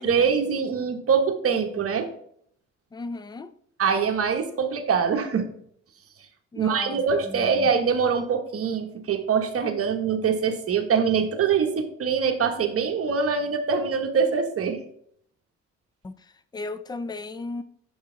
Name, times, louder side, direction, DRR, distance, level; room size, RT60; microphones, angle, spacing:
voice 1, 0.0-2.1 3.8-5.5 6.6-14.8, right 6 dB, 50° right, 5 dB, 1.2 m, -24 dB
voice 2, 2.9-3.5 6.5-7.7 16.0-17.6, left 3 dB, 15° left, 13 dB, 0.5 m, -36 dB
7.3 x 5.4 x 3.9 m, 0.67 s
cardioid pair, 90°, 30 cm